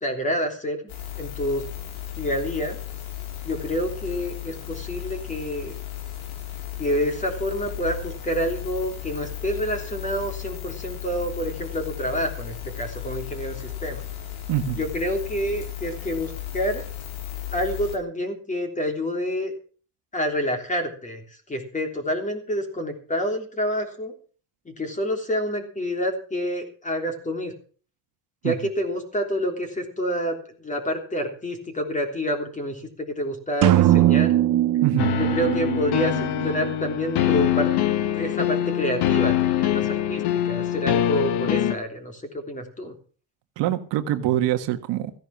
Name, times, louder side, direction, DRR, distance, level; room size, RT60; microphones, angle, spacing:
voice 1, 0.0-1.6 2.2-2.8 3.4-5.8 6.8-14.0 14.8-16.8 17.5-19.5 20.1-21.2 21.5-24.1 24.7-27.5 28.4-34.4 35.2-37.7 38.1-39.8 40.1-42.9, equal, 15° left, 3.4 m, -28 dB
sound 1, 0.9-18.0, left 12 dB, 85° left, 4.1 m, -35 dB
voice 2, 14.5-14.8 28.4-28.5 34.8-35.1 43.6-45.1, right 12 dB, 65° right, 1.6 m, -24 dB
sound 2, 33.6-37.4, right 13 dB, 45° right, 0.8 m, -21 dB
sound 3, 35.0-41.7, left 11 dB, 60° left, 1.3 m, -24 dB
15.5 x 10.0 x 5.9 m
cardioid pair, 140°, 45 cm